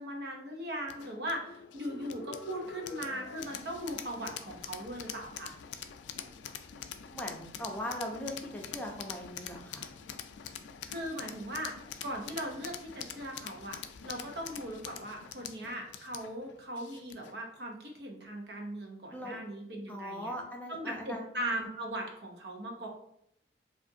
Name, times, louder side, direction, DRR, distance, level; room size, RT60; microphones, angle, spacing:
voice 1, 0.0-5.5 10.9-11.7 12.0-20.3 20.7-22.9, right 1 dB, 70° right, 1 dB, 0.8 m, -39 dB
sound 1, 0.9-17.4, left 8 dB, 90° left, 0.3 m, -45 dB
voice 2, 7.1-9.9 19.1-19.4 19.9-21.3, equal, 10° left, 0 dB, 0.5 m, -39 dB
4.9 x 2.5 x 2.7 m, 0.73 s
head